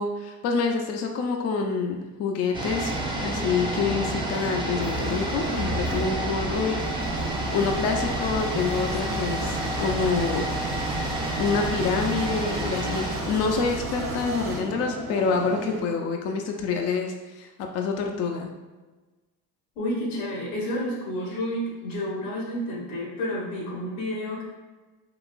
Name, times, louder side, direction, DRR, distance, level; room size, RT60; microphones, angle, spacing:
voice 1, 0.0-2.9 3.2-6.7 7.5-10.8 11.4-17.5 17.7-18.5, left 5 dB, 35° left, 3 dB, 0.4 m, -27 dB
sound 1, 2.5-14.3 14.5-14.6, right 1 dB, 10° right, 0.6 m, -30 dB
sound 2, 2.8-15.8, right 2 dB, 75° right, 0.8 m, -36 dB
sound 3, 4.7-14.6, right 1 dB, 35° right, 0.9 m, -35 dB
voice 2, 19.8-24.4, equal, 85° left, -2 dB, 1.1 m, -30 dB
3.8 x 2.4 x 2.4 m, 1.2 s
hypercardioid pair, 75°, 47 cm